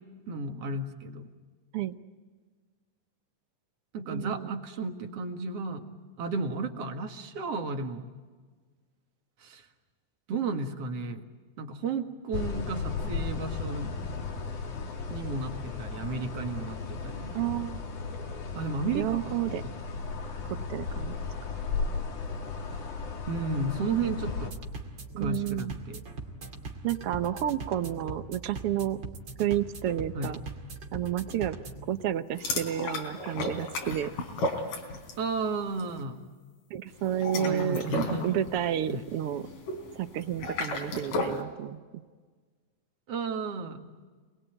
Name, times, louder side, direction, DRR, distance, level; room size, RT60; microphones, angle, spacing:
voice 1, 0.3-1.3 3.9-5.9 6.2-8.1 9.4-9.6 10.3-11.3 11.6-13.9 15.1-17.8 18.5-19.8 23.3-24.6 25.2-26.0 30.1-30.3 35.2-36.2 37.3-38.3 38.9-39.0 43.1-43.8, right 3 dB, 50° right, 5 dB, 2.6 m, -33 dB
voice 2, 4.1-4.6 17.3-17.8 18.9-19.6 20.7-21.1 25.1-25.7 26.8-29.0 29.4-30.4 30.9-31.6 31.9-34.1 36.7-37.8 38.2-39.5 39.9-41.8, right 11 dB, 70° right, 10 dB, 1.4 m, -30 dB
sound 1, 12.3-24.5, left 4 dB, 70° left, 3.8 m, -35 dB
sound 2, 24.3-31.9, right 3 dB, 35° right, 2.8 m, -41 dB
sound 3, 32.4-35.3 35.6-35.9 37.0-41.4, left 2 dB, 85° left, 5.2 m, -34 dB
28.0 x 21.5 x 9.2 m, 1.4 s
omnidirectional pair, 3.8 m